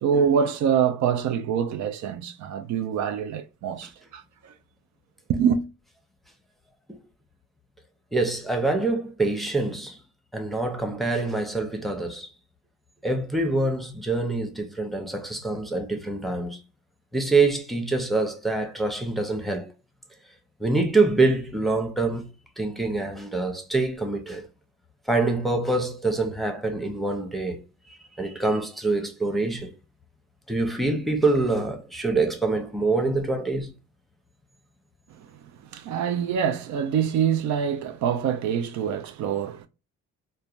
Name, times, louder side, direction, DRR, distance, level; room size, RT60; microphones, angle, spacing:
voice 1, 0.0-4.5 5.3-5.6 35.1-35.3 35.7-39.7, right 7 dB, 70° right, 0.5 m, -25 dB
voice 2, 8.1-10.0 10.3-12.3 13.0-16.6 17.1-19.7 20.6-22.3 22.6-24.4 25.1-27.6 27.9-29.7 30.5-33.7, right 3 dB, ahead, 0.7 m, -25 dB
3.2 x 2.2 x 2.4 m
cardioid pair, 90°, 30 cm